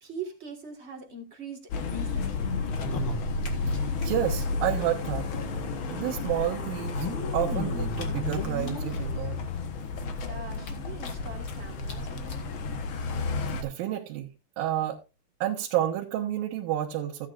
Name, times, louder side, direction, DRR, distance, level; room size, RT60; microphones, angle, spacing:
voice 1, 0.0-2.5 10.2-12.4, right 4 dB, 55° right, 2 dB, 0.7 m, -42 dB
sound 1, 1.7-13.6, left 3 dB, 75° left, 1.2 m, -32 dB
sound 2, 2.7-4.1 4.3-4.4 4.6-4.7 5.8-5.9 6.7-9.0 9.6-9.7 10.1-10.2 10.5-11.5 11.9-12.0 12.3-12.4 13.2-13.3, left 2 dB, 45° left, 1.7 m, -36 dB
voice 2, 3.7-5.3 5.9-7.1 7.3-9.4 13.6-14.3 14.6-15.0 15.4-17.3, right 12 dB, 90° right, 0 dB, 2.8 m, -30 dB
sound 3, 4.0-9.2, left 2 dB, 25° left, 2.9 m, -48 dB
15.5 x 8.8 x 2.4 m, 0.28 s
omnidirectional pair, 4.0 m